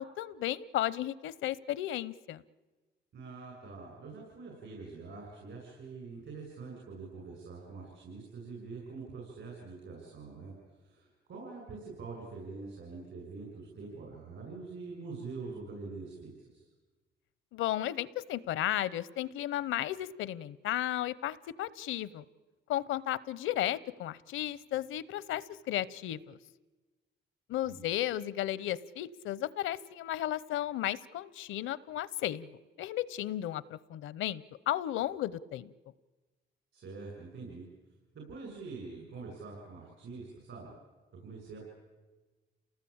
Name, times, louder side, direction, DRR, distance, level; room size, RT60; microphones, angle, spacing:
voice 1, 0.0-2.4 17.5-22.2 22.7-26.4 27.5-32.5 32.8-35.7, left 13 dB, 85° left, 20 dB, 0.8 m, -34 dB
voice 2, 3.1-10.5 10.8-16.7 27.6-27.9 36.7-37.6 38.1-40.7 41.2-41.6, right 4 dB, 70° right, -2 dB, 7.6 m, -45 dB
28.5 x 18.5 x 8.8 m, 1.2 s
cardioid pair, 90°, 20 cm